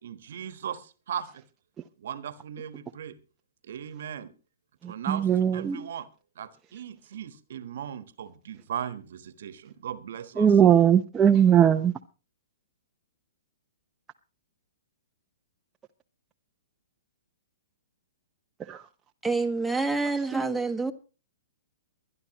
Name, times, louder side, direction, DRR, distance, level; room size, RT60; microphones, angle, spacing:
voice 1, 0.0-1.4 2.0-3.2 3.7-4.3 4.9-6.1 6.4-10.5, right 9 dB, 65° right, 1.3 m, -37 dB
voice 2, 4.8-5.9 10.4-11.9 18.7-18.8 20.3-20.4, right 9 dB, 15° right, 0.8 m, -20 dB
voice 3, 19.2-20.9, right 3 dB, ahead, 1.5 m, -27 dB
23.5 x 11.0 x 3.0 m
hypercardioid pair, 125°, 0 cm